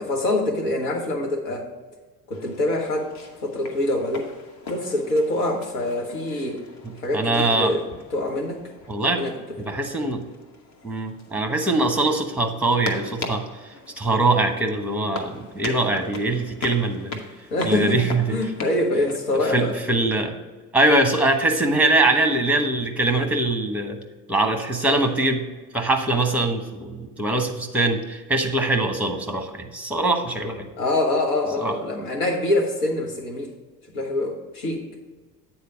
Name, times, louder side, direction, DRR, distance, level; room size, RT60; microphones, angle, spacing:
voice 1, 0.0-1.7 2.3-3.1 3.4-4.3 4.7-6.6 7.0-7.8 8.1-8.6 9.1-9.3 9.6-9.7 17.5-18.0 18.3-19.8 30.8-33.5 33.9-34.8, left 1 dB, 70° left, 2 dB, 1.4 m, -24 dB
sound 1, 2.3-19.8, left 3 dB, 35° left, 1.1 m, -40 dB
voice 2, 6.8-7.7 8.9-9.2 9.6-10.3 10.8-17.2 17.6-18.3 19.5-20.4 20.7-24.0 24.3-25.4 25.7-30.7 31.6-31.7, right 2 dB, 5° right, 5 dB, 1.0 m, -22 dB
8.6 x 4.3 x 5.1 m, 1.3 s
figure-of-eight pair, 55°, 46 cm